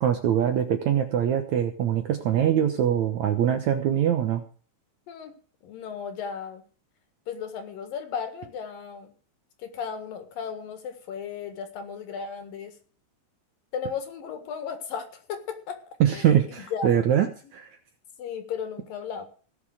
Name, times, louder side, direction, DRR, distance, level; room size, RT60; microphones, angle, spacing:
voice 1, 0.0-4.4 16.0-17.7, right 10 dB, 65° right, 7 dB, 1.9 m, -23 dB
voice 2, 5.6-6.6 7.3-9.1 9.6-12.7 13.7-15.8 16.1-16.9 18.2-19.2, left 6 dB, 70° left, 8 dB, 3.4 m, -35 dB
17.5 x 6.7 x 6.4 m, 0.40 s
omnidirectional pair, 4.4 m